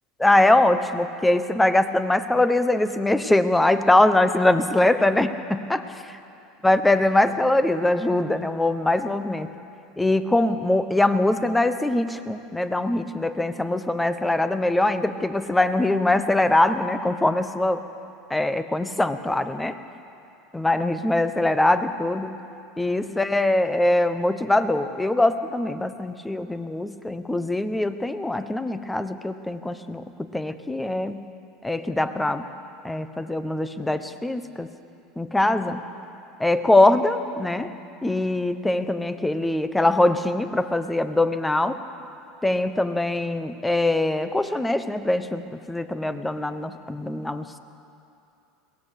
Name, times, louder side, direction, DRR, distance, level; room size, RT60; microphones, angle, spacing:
voice 1, 0.2-6.1 6.6-9.5 10.0-17.9 18.3-19.8 20.5-22.4 22.8-31.3 31.6-32.5 32.8-34.7 35.2-35.8 36.4-41.8 42.4-47.6, left 2 dB, 10° left, 11 dB, 1.1 m, -22 dB
22.5 x 18.0 x 6.7 m, 2.7 s
supercardioid pair, 105°, 0 cm